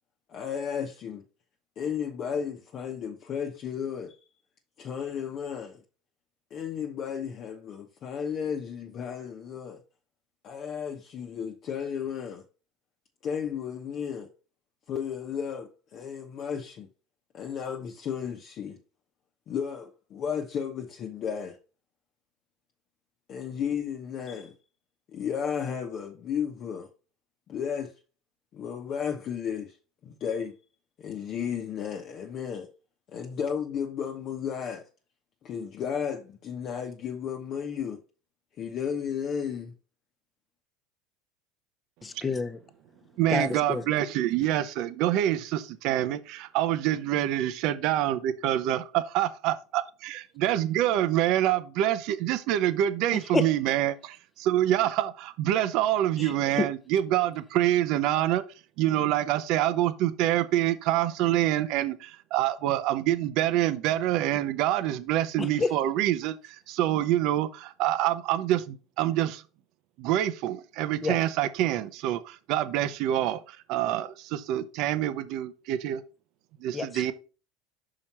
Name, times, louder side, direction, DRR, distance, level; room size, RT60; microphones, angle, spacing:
voice 1, 0.3-1.2 1.8-4.2 4.8-5.8 6.5-9.8 10.4-12.4 13.2-14.3 14.9-16.9 17.3-18.8 19.5-21.6 23.3-24.5 25.1-26.9 27.5-27.9 28.5-29.8 30.0-30.5 31.0-32.7 33.1-34.9 35.4-38.0 38.6-39.7, left 7 dB, 45° left, 0.9 m, -33 dB
voice 2, 42.0-42.6 43.3-43.8 53.3-53.4 56.6-56.7 65.6-65.7 71.0-71.2 76.7-76.9, left 3 dB, 20° left, 0.9 m, -27 dB
voice 3, 43.1-69.5 70.0-76.0 76.6-77.1, right 13 dB, 60° right, 0.8 m, -26 dB
5.8 x 4.9 x 4.3 m
hypercardioid pair, 90°, 0 cm